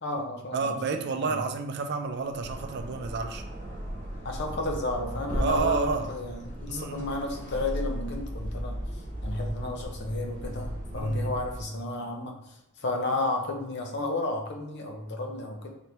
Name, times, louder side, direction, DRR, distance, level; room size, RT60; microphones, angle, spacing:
voice 1, 0.0-0.7 1.2-1.4 4.2-8.8 9.2-15.7, left 2 dB, 55° left, 3 dB, 0.7 m, -32 dB
voice 2, 0.5-3.4 5.4-6.1 6.7-7.1 10.9-11.3, right 4 dB, 55° right, 6 dB, 0.4 m, -30 dB
sound 1, 2.3-11.8, equal, 40° left, 1.1 m, -36 dB
4.0 x 2.9 x 3.3 m, 0.86 s
head